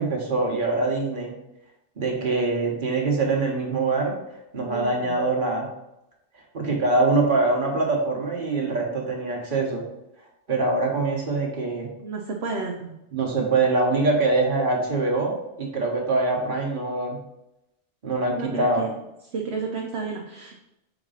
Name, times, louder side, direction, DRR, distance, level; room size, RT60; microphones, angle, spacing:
voice 1, 0.0-1.4 2.0-4.2 4.5-5.7 6.5-9.8 10.5-11.9 13.1-17.2 18.0-18.9, right 3 dB, 45° right, 0 dB, 1.3 m, -24 dB
voice 2, 4.6-5.2 12.0-13.0 18.3-19.0 19.3-20.6, right 4 dB, 65° right, 1 dB, 1.0 m, -32 dB
4.3 x 3.9 x 5.6 m, 0.88 s
omnidirectional pair, 1.2 m